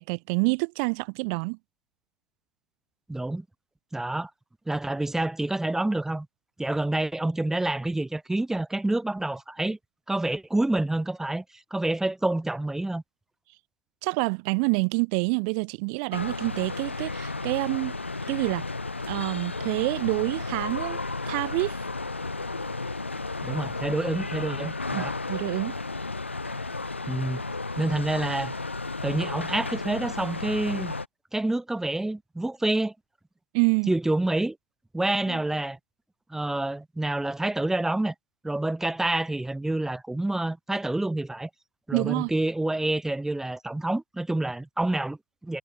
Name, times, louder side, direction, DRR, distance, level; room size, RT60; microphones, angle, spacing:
voice 1, 0.0-1.6 14.0-17.9 18.3-18.6 19.1-21.0 21.3-21.8 24.9-25.7 33.5-33.9 35.3-35.4 41.9-42.3, right 36 dB, 55° right, 1.5 m, -27 dB
voice 2, 3.1-3.5 3.9-4.3 4.7-6.3 6.6-9.8 10.1-13.0 23.4-25.1 27.1-27.4 27.8-28.5 29.0-30.9 31.3-32.9 33.9-34.6 34.9-35.8 36.3-38.1 38.4-41.5 41.9-45.6, right 2 dB, 5° right, 1.8 m, -28 dB
sound 1, 16.1-31.1, left 3 dB, 85° left, 1.0 m, -33 dB
figure-of-eight pair, 75°, 6 cm